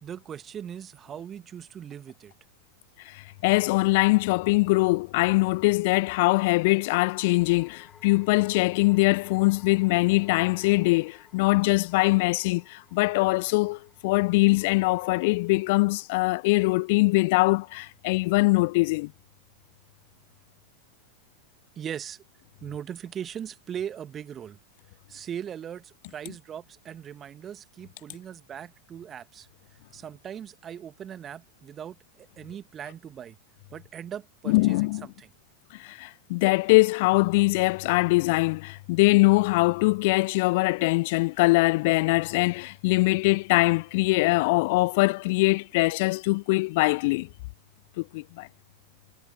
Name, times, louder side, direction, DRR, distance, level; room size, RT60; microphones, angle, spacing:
voice 1, 0.0-2.3 21.8-22.2 22.6-24.6 25.1-29.5 29.9-33.4 33.7-35.3, right 9 dB, 25° right, 1.8 m, -39 dB
voice 2, 3.0-19.1 34.5-35.0 35.7-47.3 48.0-48.5, left 24 dB, 50° left, 0.5 m, -22 dB
sound 1, 3.2-3.9 6.3-17.7, left 8 dB, 25° left, 6.1 m, -58 dB
figure-of-eight pair, 90°, 0 cm